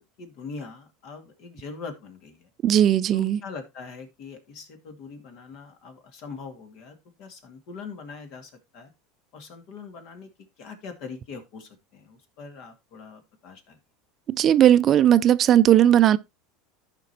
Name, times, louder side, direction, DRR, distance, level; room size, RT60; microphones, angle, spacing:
voice 1, 0.0-2.5 3.1-8.9 9.3-10.3 10.6-13.8, left 5 dB, 60° left, 2.1 m, -42 dB
voice 2, 2.6-3.4 14.3-16.2, right 11 dB, 40° right, 0.4 m, -17 dB
14.0 x 5.3 x 2.8 m
hypercardioid pair, 95°, 0 cm